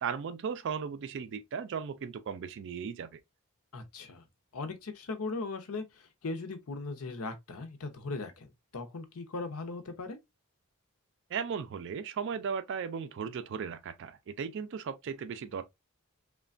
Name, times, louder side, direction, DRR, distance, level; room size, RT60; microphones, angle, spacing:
voice 1, 0.0-3.2 11.3-15.6, right 6 dB, 55° right, 0.4 m, -36 dB
voice 2, 3.7-4.2 4.5-10.2, left 3 dB, 70° left, 0.6 m, -39 dB
3.2 x 2.2 x 2.4 m
head